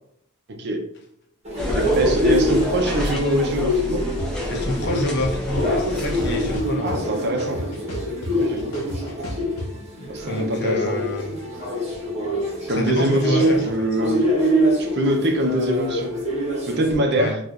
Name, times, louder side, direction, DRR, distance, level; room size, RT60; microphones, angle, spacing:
voice 1, 0.5-0.8 1.7-4.1 6.8-7.6 8.3-8.7 10.1-11.0 12.7-14.3 14.8-16.2 16.7-17.4, equal, 50° right, 4 dB, 0.6 m, -23 dB
sound 1, 1.4-17.0, equal, 30° right, 1.0 m, -26 dB
sound 2, 1.6-6.6, equal, 5° left, 0.5 m, -28 dB
sound 3, 4.2-4.3 4.7-5.6 6.0-7.1 7.4-9.7, equal, 70° left, 1.0 m, -32 dB
voice 2, 4.5-6.9 10.0-11.3 12.7-13.7 17.1-17.3, left 1 dB, 50° left, 1 dB, 0.7 m, -27 dB
4.5 x 2.4 x 2.4 m, 0.69 s
head